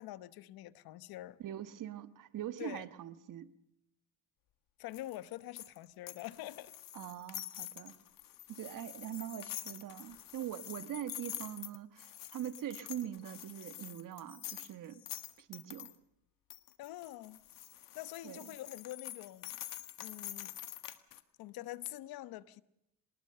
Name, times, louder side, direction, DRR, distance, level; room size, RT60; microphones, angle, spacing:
voice 1, 0.0-1.4 2.6-2.9 4.8-6.7 16.8-17.4 17.9-19.5 20.0-20.6 21.4-22.6, left 15 dB, 80° left, 1.1 m, -45 dB
voice 2, 1.4-3.5 6.9-8.0 8.5-15.0 15.4-15.9 18.2-18.5, right 11 dB, 60° right, 1.5 m, -43 dB
sound 1, 4.9-15.9 16.5-21.2, left 13 dB, 65° left, 1.8 m, -47 dB
26.0 x 20.0 x 6.8 m
cardioid pair, 105°, 36 cm